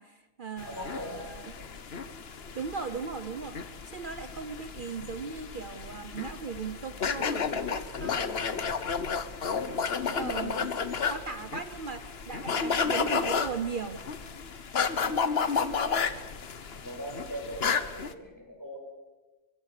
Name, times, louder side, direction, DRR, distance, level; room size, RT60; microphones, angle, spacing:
voice 1, 0.0-1.5 2.5-3.6 3.9-8.5 9.7-10.7 11.0-14.1, right 5 dB, 50° right, 10 dB, 1.0 m, -38 dB
sound 1, 0.6-18.1, left 5 dB, 65° left, 1.3 m, -32 dB
voice 2, 0.6-1.8 15.0-15.3 16.7-18.8, equal, 15° left, 2 dB, 5.8 m, -41 dB
23.5 x 23.5 x 6.7 m, 1.2 s
omnidirectional pair, 1.1 m